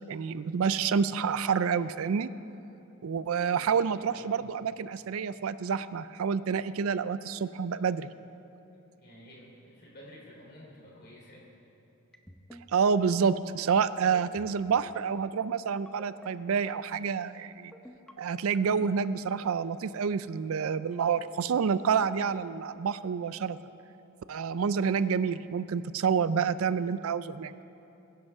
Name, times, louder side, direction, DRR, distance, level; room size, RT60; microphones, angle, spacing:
voice 1, 0.0-2.3 3.0-8.1 12.7-17.7 18.2-23.6 24.3-27.5, right 6 dB, 75° right, 15 dB, 0.4 m, -28 dB
voice 2, 3.5-4.3 9.0-11.5, left 1 dB, 50° left, -3 dB, 3.3 m, -51 dB
sound 1, 12.1-12.6 13.0-13.2 14.0-14.5 14.8-15.1 15.9-16.3 16.7-17.1 17.7-18.1 18.5-18.9, equal, 5° left, 0.6 m, -49 dB
22.5 x 10.5 x 3.6 m, 2.9 s
head